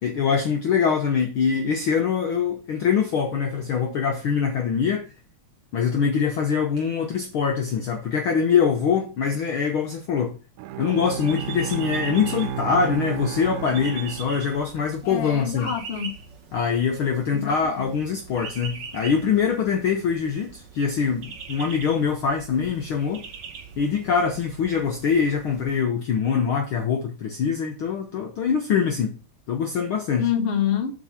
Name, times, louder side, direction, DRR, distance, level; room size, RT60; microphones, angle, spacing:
voice 1, 0.0-5.1 5.7-10.4 10.8-15.7 16.5-23.2 23.8-29.1 29.5-30.3, left 6 dB, 65° left, 1.3 m, -23 dB
Bowed string instrument, 10.6-15.0, right 9 dB, 90° right, 2.0 m, -33 dB
sound 1, 11.0-25.8, right 6 dB, 60° right, 1.2 m, -42 dB
voice 2, 15.0-16.1 17.3-17.5 30.2-30.9, left 9 dB, 40° left, 1.0 m, -26 dB
7.6 x 4.7 x 5.7 m
omnidirectional pair, 3.4 m